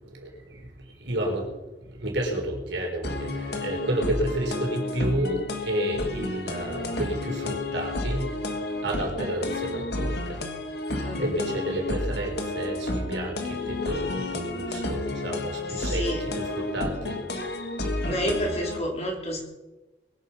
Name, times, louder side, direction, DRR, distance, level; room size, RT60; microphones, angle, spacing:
voice 1, 1.0-1.5 2.0-8.3 8.8-10.4 11.2-17.2, right 1 dB, 85° right, 1 dB, 4.0 m, -30 dB
sound 1, 3.0-18.8, left 2 dB, 60° left, 1.7 m, -31 dB
voice 2, 11.0-11.4 15.7-16.2 18.0-19.4, equal, 35° left, 0 dB, 3.5 m, -29 dB
22.0 x 8.3 x 5.6 m, 1.1 s
head